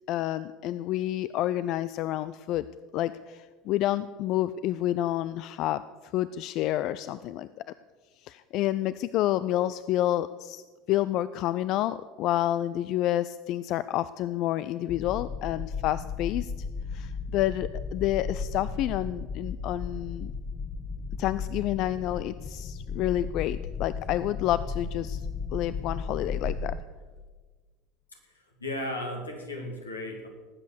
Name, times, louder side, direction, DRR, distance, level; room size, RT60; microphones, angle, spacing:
voice 1, 0.1-2.7 2.9-5.8 6.1-7.5 8.2-10.6 10.9-16.5 16.9-20.3 21.2-25.2 25.5-26.7, left 13 dB, 50° left, 15 dB, 0.4 m, -29 dB
sound 1, 14.9-26.8, left 5 dB, 25° left, 0.8 m, -35 dB
voice 2, 28.1-30.3, left 1 dB, 85° left, 2 dB, 2.5 m, -36 dB
19.0 x 8.3 x 6.8 m, 1.5 s
figure-of-eight pair, 70°, 0 cm